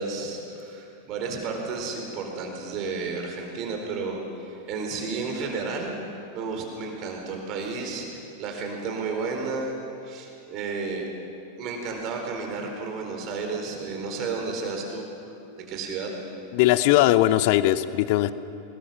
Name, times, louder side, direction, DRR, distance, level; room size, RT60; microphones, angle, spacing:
voice 1, 0.0-5.9 6.3-9.8 10.0-11.1 11.6-15.0 15.7-16.1, right 4 dB, 40° right, 2 dB, 4.3 m, -32 dB
voice 2, 16.5-18.3, left 15 dB, 45° left, 15 dB, 0.8 m, -19 dB
24.5 x 20.0 x 6.0 m, 2.7 s
figure-of-eight pair, 90°, 0 cm